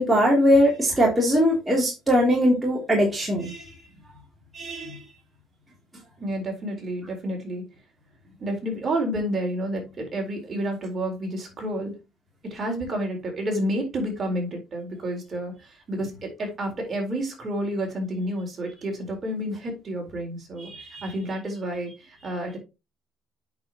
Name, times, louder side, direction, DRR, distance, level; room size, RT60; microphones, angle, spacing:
voice 1, 0.0-3.8 4.5-5.0 20.6-21.1, equal, 10° right, -3 dB, 3.1 m, -21 dB
voice 2, 6.2-7.7 8.4-11.9 12.4-22.6, right 1 dB, 30° right, 2 dB, 4.1 m, -30 dB
8.5 x 6.7 x 3.0 m, 0.26 s
cardioid pair, 140°, 0 cm